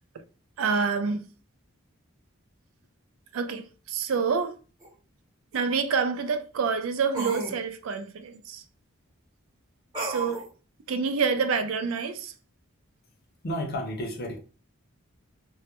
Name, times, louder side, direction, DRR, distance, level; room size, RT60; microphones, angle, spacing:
voice 1, 0.6-1.3 3.3-4.6 5.5-8.6 10.0-10.4 10.9-12.3, right 5 dB, 75° right, 0.4 m, -27 dB
sound 1, 4.8-4.9 7.1-7.6 9.9-10.5, right 3 dB, 20° right, 0.8 m, -32 dB
voice 2, 13.4-14.4, equal, 45° left, 0.5 m, -31 dB
2.2 x 2.0 x 2.8 m
head